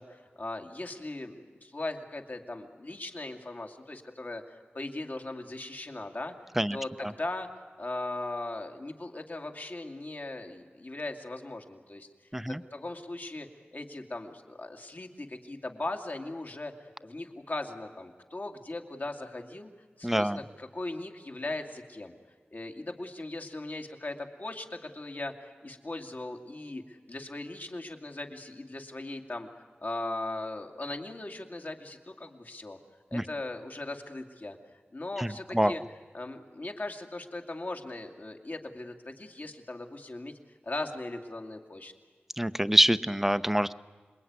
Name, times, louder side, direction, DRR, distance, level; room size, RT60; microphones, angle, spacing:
voice 1, 0.0-4.4 4.7-6.3 6.7-7.5 7.8-12.1 12.5-19.7 20.0-22.1 22.5-29.5 29.8-32.8 33.1-35.8 36.1-40.4 40.6-41.9, left 2 dB, 50° left, 4 dB, 2.5 m, -39 dB
voice 2, 20.0-20.4 33.1-33.2 35.2-35.7 42.4-43.7, equal, 5° right, 13 dB, 0.8 m, -25 dB
27.0 x 22.0 x 9.6 m, 1.5 s
wide cardioid pair, 55°, 4 cm